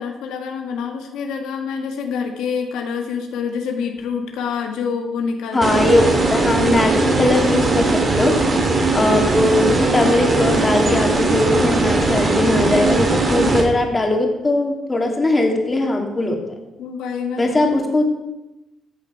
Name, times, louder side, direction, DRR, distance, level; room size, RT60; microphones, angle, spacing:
voice 1, 0.0-5.6 16.8-17.5, left 6 dB, 90° left, 3 dB, 1.5 m, -26 dB
voice 2, 5.5-8.3 8.9-16.4 17.4-18.0, left 2 dB, 25° left, 2 dB, 2.7 m, -19 dB
sound 1, 5.6-13.6, right 3 dB, 35° right, 3.1 m, -19 dB
14.0 x 7.6 x 5.8 m, 0.97 s
cardioid pair, 90°, 0 cm